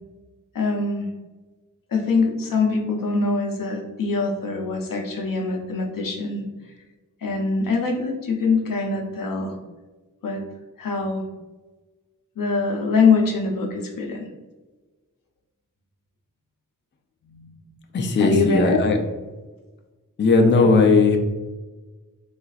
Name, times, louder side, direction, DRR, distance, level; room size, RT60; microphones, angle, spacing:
voice 1, 0.5-1.1 1.9-6.4 7.2-9.6 10.2-10.4 10.8-11.2 12.4-14.3 17.3-17.5 18.1-18.8 20.6-20.7, left 4 dB, 85° left, 2 dB, 0.6 m, -23 dB
voice 2, 17.9-19.0 20.2-21.2, left 3 dB, 35° left, 3 dB, 0.4 m, -17 dB
4.0 x 2.5 x 2.3 m, 1.2 s
wide cardioid pair, 80°, 33 cm